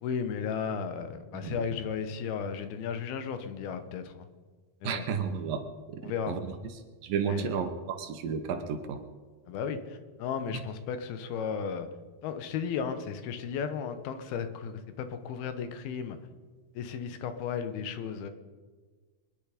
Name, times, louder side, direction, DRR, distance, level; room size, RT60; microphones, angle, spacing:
voice 1, 0.0-4.3 4.8-5.0 6.0-6.3 7.3-7.5 9.5-11.9 12.2-16.2 16.8-18.3, left 7 dB, 85° left, 9 dB, 3.0 m, -34 dB
voice 2, 4.8-6.5 7.0-9.0, right 6 dB, 70° right, 7 dB, 2.7 m, -32 dB
24.0 x 10.5 x 5.1 m, 1.4 s
omnidirectional pair, 4.3 m